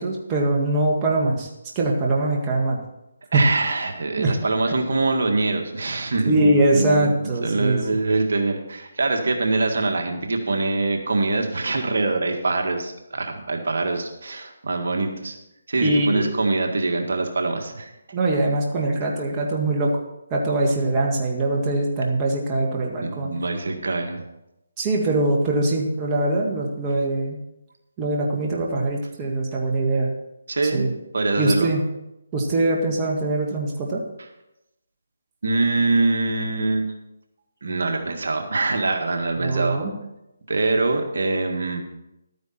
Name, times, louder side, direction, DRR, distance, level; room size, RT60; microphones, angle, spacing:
voice 1, 0.0-1.5 1.8-2.8 3.3-3.4 4.2-4.3 4.7-4.8 6.3-7.8 15.8-16.4 18.1-19.9 20.3-23.3 24.8-27.4 28.0-30.1 30.7-30.9 31.4-31.8 32.3-34.0 39.4-39.9, right 2 dB, 20° right, -2 dB, 1.8 m, -22 dB
voice 2, 3.3-7.1 7.4-15.4 15.7-17.9 23.0-24.2 30.5-30.9 31.1-31.7 35.4-36.9 37.6-39.8 40.5-41.8, right 3 dB, 70° right, 3 dB, 1.8 m, -24 dB
12.5 x 9.5 x 4.4 m, 0.90 s
figure-of-eight pair, 155°, 0 cm